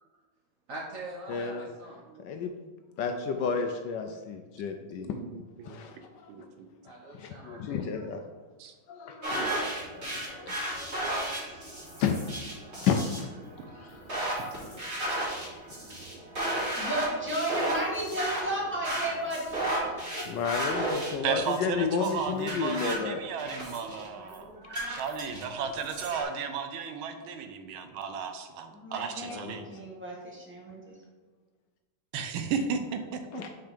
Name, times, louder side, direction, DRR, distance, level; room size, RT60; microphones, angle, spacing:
voice 1, 0.7-2.0 6.8-7.9 11.4-11.9 24.7-24.8, right 2 dB, 55° right, -2 dB, 1.0 m, -43 dB
voice 2, 1.3-1.7 2.2-2.5 3.0-5.1 5.6-6.3 6.9-8.2 8.9-11.2 12.0-12.3 12.8-13.1 13.8-14.0 14.5-15.6 20.3-23.2 29.3-29.7 33.3-33.5, left 6 dB, 75° left, 5 dB, 1.1 m, -32 dB
voice 3, 5.0-5.8 6.3-6.7 8.6-8.7 9.2-9.7 21.2-24.5 24.9-29.6 32.1-33.4, right 6 dB, 85° right, 7 dB, 1.5 m, -35 dB
sound 1, 9.2-26.2, right 1 dB, 30° right, 2.6 m, -34 dB
voice 4, 16.8-20.2 28.7-29.4 29.7-30.9, right 1 dB, 5° right, -4 dB, 1.2 m, -34 dB
5.8 x 4.5 x 5.1 m, 1.3 s
omnidirectional pair, 2.2 m